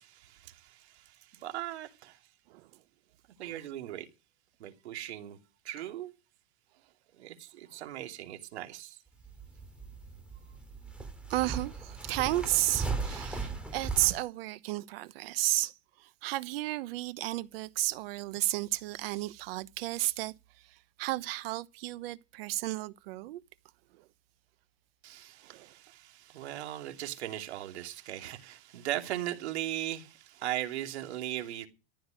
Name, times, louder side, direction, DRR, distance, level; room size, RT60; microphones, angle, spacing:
voice 1, 0.0-2.2 3.4-4.1 4.6-5.4 5.6-6.1 7.1-9.0 25.0-31.7, right 13 dB, 85° right, 2.8 m, -38 dB
sound 1, 9.1-14.2, right 4 dB, 5° right, 3.1 m, -38 dB
voice 2, 11.3-15.7 16.0-20.3 21.0-23.4 25.4-25.7, right 17 dB, 65° right, 1.1 m, -32 dB
14.5 x 11.0 x 5.1 m
supercardioid pair, 150°, 32 cm